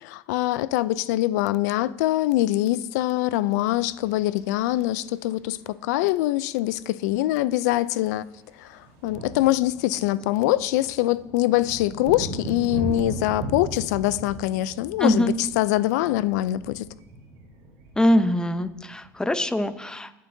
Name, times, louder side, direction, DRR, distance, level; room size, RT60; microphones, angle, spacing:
voice 1, 0.0-8.3 8.6-16.9, left 15 dB, 85° left, 0.4 m, -24 dB
sound 1, 3.8-5.4 6.7-6.8 7.0-7.2 7.5-19.6, right 2 dB, 80° right, 2.5 m, -38 dB
voice 2, 15.0-15.3 18.0-20.2, left 1 dB, 10° left, 0.7 m, -23 dB
18.0 x 7.5 x 2.7 m
supercardioid pair, 100°, 9 cm